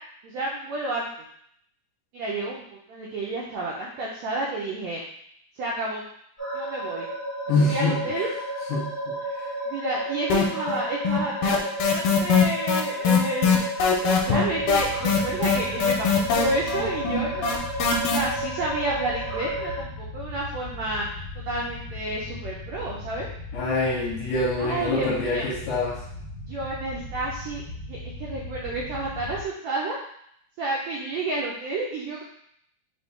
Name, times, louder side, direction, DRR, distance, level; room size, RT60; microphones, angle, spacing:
voice 1, 0.2-1.1 2.1-5.0 5.6-6.0 6.5-7.1 7.6-8.3 9.7-13.6 14.0-17.5 18.1-23.3 24.6-25.5 26.5-27.6 27.9-30.0 30.6-32.2, right 2 dB, 85° right, -4 dB, 1.5 m, -30 dB
sound 1, 6.4-19.8, right 1 dB, 15° left, 1.0 m, -32 dB
voice 2, 7.5-8.0 8.7-9.1 23.5-26.0, left 2 dB, 65° left, -5 dB, 2.1 m, -25 dB
sound 2, 10.3-10.8 11.1-18.2, left 6 dB, 85° left, 2.2 m, -21 dB
cave echo, 14.4-29.5, left 2 dB, 65° right, 1.4 m, -38 dB
5.2 x 2.6 x 3.5 m, 0.69 s
omnidirectional pair, 3.7 m